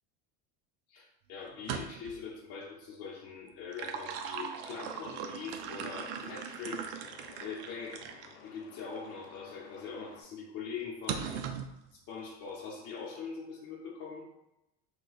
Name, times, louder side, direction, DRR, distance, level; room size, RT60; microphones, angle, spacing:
voice 1, 0.9-6.9 7.4-8.1 8.4-11.4 11.9-14.3, left 5 dB, 45° left, -3 dB, 0.8 m, -42 dB
sound 1, 1.5-2.2 3.5-8.3 9.0-9.1 11.1-11.7, right 7 dB, 75° right, 0.5 m, -39 dB
Truck, 4.9-10.2, left 5 dB, 75° left, 0.6 m, -55 dB
2.8 x 2.3 x 4.0 m, 0.89 s
supercardioid pair, 120°, 34 cm